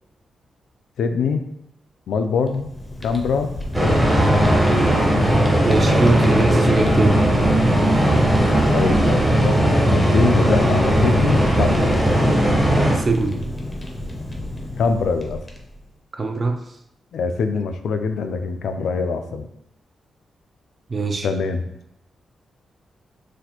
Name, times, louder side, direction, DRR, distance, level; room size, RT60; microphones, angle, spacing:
voice 1, 1.0-1.4 2.1-2.7 3.0-3.5 3.8-4.0 8.7-11.9 14.8-15.4 17.1-19.5 21.2-21.6, left 5 dB, 80° left, 7 dB, 0.3 m, -23 dB
Fire, 2.3-15.9, left 1 dB, 15° left, 0.5 m, -32 dB
sound 1, 3.7-13.0, right 1 dB, 15° right, 0.8 m, -17 dB
voice 2, 5.6-7.2 12.9-13.4 16.1-16.6 20.9-21.3, right 3 dB, 35° right, 5 dB, 0.4 m, -21 dB
4.1 x 2.6 x 2.8 m, 0.78 s
wide cardioid pair, 125°, 0 cm